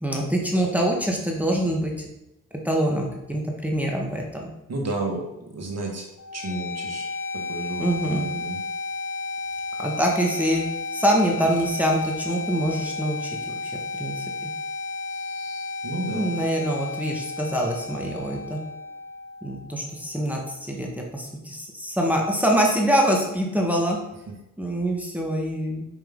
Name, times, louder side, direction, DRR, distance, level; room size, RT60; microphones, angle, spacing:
voice 1, 0.0-2.1 2.6-4.5 7.8-8.2 9.8-10.6 10.9-14.5 16.1-18.6 19.4-24.0 24.6-25.9, right 1 dB, 5° right, -1 dB, 1.4 m, -25 dB
voice 2, 4.7-6.1 6.3-8.6 15.1-16.3, right 2 dB, 45° right, 1 dB, 1.9 m, -32 dB
sound 1, 6.2-20.1, left 3 dB, 55° left, 1.3 m, -33 dB
5.4 x 5.3 x 3.7 m, 0.90 s
hypercardioid pair, 45°, 35 cm